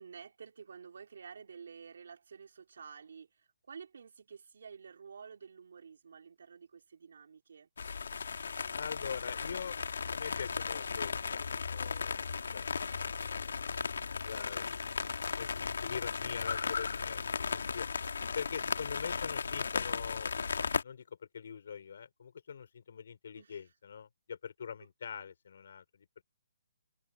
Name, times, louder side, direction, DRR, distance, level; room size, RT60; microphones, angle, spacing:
voice 1, 0.0-7.7 17.3-17.7 23.4-23.6 25.0-25.3, right 6 dB, 65° right, 3.8 m, -51 dB
sound 1, 7.8-20.8, left 5 dB, 80° left, 2.1 m, -36 dB
voice 2, 8.7-9.8 10.1-14.6 15.3-17.2 17.5-17.9 18.3-20.4 20.8-26.1, left 7 dB, 55° left, 4.3 m, -44 dB
hypercardioid pair, 165°, 0 cm